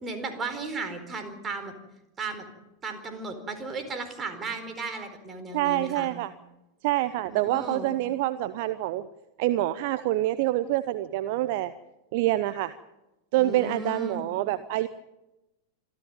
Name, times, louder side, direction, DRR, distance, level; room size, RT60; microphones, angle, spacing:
voice 1, 0.0-1.7 2.2-2.5 2.8-6.1 7.2-7.9 13.4-14.3, right 3 dB, 20° right, 8 dB, 4.4 m, -35 dB
voice 2, 5.5-6.3 6.8-9.1 9.4-11.7 12.1-12.7 13.3-14.9, right 15 dB, 50° right, 14 dB, 0.8 m, -26 dB
26.5 x 14.0 x 9.0 m, 0.98 s
figure-of-eight pair, 90°, 0 cm